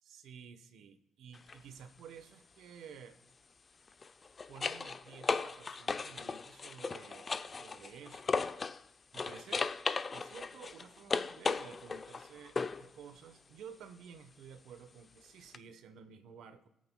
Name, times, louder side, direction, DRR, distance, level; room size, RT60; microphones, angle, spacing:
voice 1, 0.0-3.2 4.5-8.6 9.1-9.7 10.1-16.7, right 7 dB, 80° right, 11 dB, 0.9 m, -53 dB
sound 1, 1.3-1.6 3.9-8.8 9.1-12.9 15.5-15.6, left 4 dB, 35° left, 0.5 m, -36 dB
25.0 x 8.5 x 2.2 m, 0.92 s
cardioid pair, 90°, 0 cm